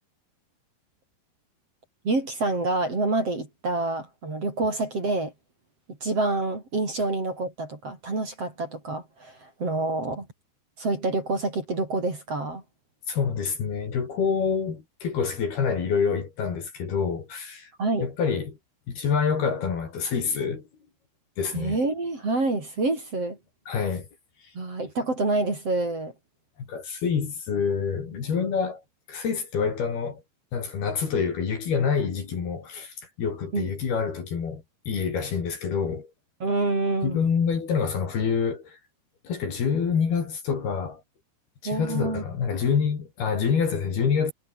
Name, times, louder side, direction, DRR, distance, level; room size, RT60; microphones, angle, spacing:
voice 1, 2.0-5.3 5.9-10.3 10.8-12.6 17.8-18.1 21.5-23.4 24.5-26.1 33.5-33.7 36.4-37.2 41.7-42.2, right 2 dB, 30° right, 6.0 m, -27 dB
voice 2, 13.1-17.7 18.0-18.6 18.9-20.6 21.4-21.8 23.7-24.1 26.6-28.8 29.1-30.2 30.5-36.1 37.0-38.8 39.2-41.0 41.6-44.3, left 6 dB, 50° left, 5.6 m, -27 dB
omnidirectional pair, 5.8 m